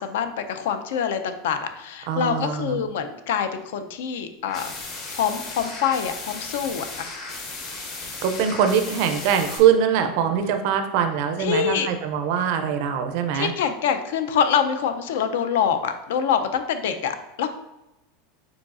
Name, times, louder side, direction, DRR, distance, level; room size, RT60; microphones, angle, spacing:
voice 1, 0.0-4.7 5.1-7.1 11.4-11.9 13.3-17.5, left 7 dB, 75° left, 9 dB, 0.4 m, -25 dB
voice 2, 2.1-2.8 8.2-13.5, right 8 dB, 50° right, 7 dB, 0.4 m, -22 dB
sound 1, 4.4-9.6, left 3 dB, 35° left, 0.8 m, -35 dB
5.0 x 3.9 x 2.4 m, 0.94 s
supercardioid pair, 175°, 0 cm